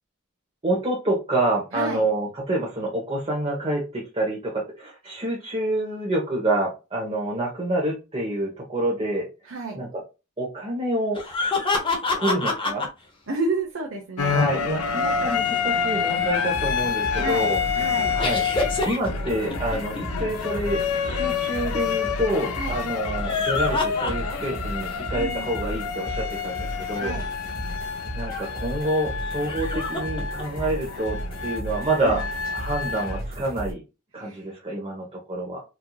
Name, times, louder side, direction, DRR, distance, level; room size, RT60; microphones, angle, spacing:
voice 1, 0.6-9.3 9.7-10.0 10.4-11.2 12.1-12.8 14.2-17.6 18.1-27.1 28.1-32.2 32.5-33.8 34.1-35.6, right 1 dB, 25° right, -3 dB, 1.0 m, -27 dB
voice 2, 1.7-2.0 9.5-9.9 13.3-14.3 17.1-18.2 22.6-22.8 25.1-25.5 27.0-27.3 32.0-32.3 34.2-34.5, right 3 dB, 60° right, -1 dB, 0.9 m, -31 dB
sound 1, 11.1-12.9 18.2-20.2 23.1-24.6 25.0-25.1 27.5-27.6 29.4-30.4, left 3 dB, 25° left, 0.8 m, -27 dB
sound 2, 14.2-33.2, left 6 dB, 90° left, 0.5 m, -28 dB
sound 3, 16.5-33.7, right 1 dB, 45° right, 1.7 m, -35 dB
4.4 x 2.7 x 2.3 m, 0.28 s
head